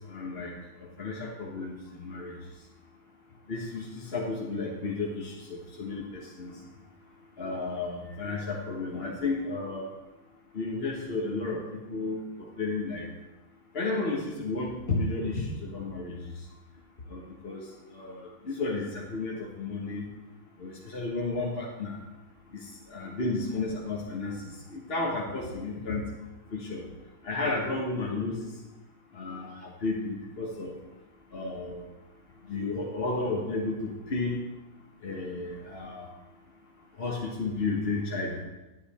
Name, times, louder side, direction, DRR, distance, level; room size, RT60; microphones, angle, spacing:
voice 1, 0.1-0.5 1.0-2.3 3.5-6.5 7.4-9.9 10.5-12.2 12.6-13.1 13.7-16.2 17.1-17.6 17.9-20.1 20.6-22.0 22.5-24.4 24.7-26.1 26.5-26.8 27.2-28.5 29.1-30.8 31.3-31.8 32.5-34.4 35.0-36.1 37.0-38.4, left 3 dB, 35° left, -3 dB, 1.3 m, -32 dB
10.5 x 9.5 x 4.3 m, 1.1 s
omnidirectional pair, 2.3 m